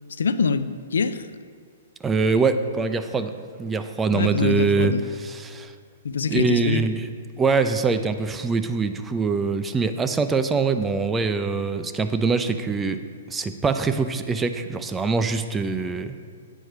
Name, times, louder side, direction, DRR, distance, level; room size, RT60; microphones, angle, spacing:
voice 1, 0.2-1.4 4.1-5.0 6.0-6.8, left 5 dB, 80° left, 12 dB, 0.4 m, -24 dB
voice 2, 2.0-3.3 3.6-5.7 6.3-7.1 7.4-13.0 13.3-16.2, right 4 dB, 15° right, 9 dB, 0.4 m, -23 dB
8.2 x 4.6 x 6.6 m, 2.1 s
hypercardioid pair, 130°, 0 cm